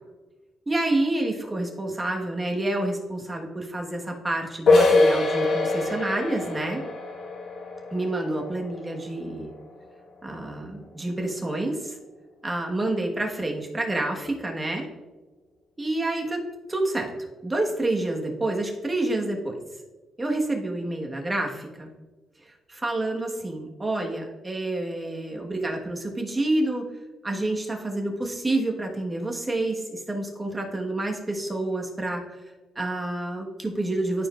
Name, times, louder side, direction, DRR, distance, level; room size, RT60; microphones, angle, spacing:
voice 1, 0.7-6.8 7.9-9.5 10.2-12.0 12.4-14.9 15.8-16.4 16.7-19.6 20.2-21.9 22.5-26.9 27.2-32.4 32.7-34.3, right 2 dB, 20° right, 1 dB, 1.4 m, -28 dB
sound 1, 4.7-10.1, left 3 dB, 60° left, 1.5 m, -24 dB
13.0 x 4.5 x 2.5 m, 1.2 s
cardioid pair, 90°, 0 cm